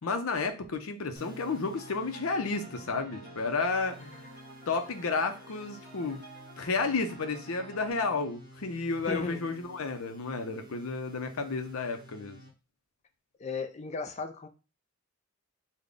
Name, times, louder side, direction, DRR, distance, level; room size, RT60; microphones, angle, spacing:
voice 1, 0.0-4.3 4.7-6.2 6.6-12.4, left 4 dB, 75° left, 7 dB, 0.6 m, -32 dB
sound 1, 1.2-12.5, equal, 20° right, 0.8 m, -52 dB
sound 2, 1.7-7.9, right 2 dB, 5° right, 1.8 m, -51 dB
voice 2, 9.1-9.4 13.4-14.5, left 4 dB, 30° left, 6 dB, 0.4 m, -35 dB
3.4 x 2.2 x 3.8 m, 0.31 s
head